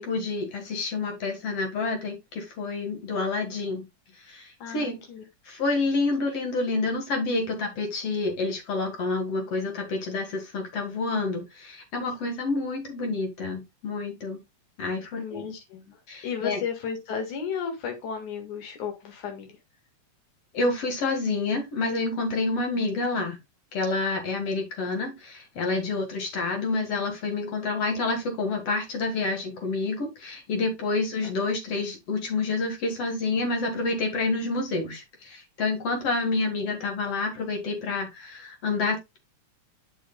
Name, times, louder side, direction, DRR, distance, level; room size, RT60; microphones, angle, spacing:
voice 1, 0.0-3.9 4.3-5.0 5.5-14.4 14.8-15.5 16.1-16.6 20.5-23.4 23.7-39.2, left 3 dB, 55° left, 2.6 m, -28 dB
voice 2, 4.6-5.2 12.1-12.2 15.2-16.0 16.2-19.6, left 7 dB, 75° left, 3.1 m, -34 dB
8.2 x 6.3 x 2.3 m
omnidirectional pair, 3.6 m